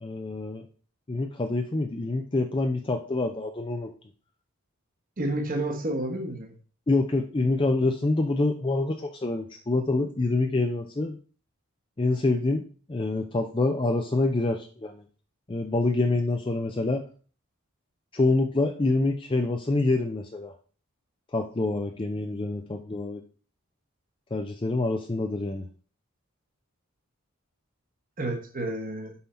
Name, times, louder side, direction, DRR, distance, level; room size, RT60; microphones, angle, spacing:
voice 1, 0.0-0.6 1.1-3.9 6.9-11.2 12.0-12.6 12.9-14.9 15.5-17.0 18.1-20.5 21.3-23.2 24.3-25.7, left 2 dB, 20° left, 5 dB, 0.4 m, -26 dB
voice 2, 5.2-6.5 28.2-29.1, right 1 dB, 40° right, 3 dB, 1.0 m, -30 dB
5.6 x 5.5 x 4.2 m, 0.40 s
head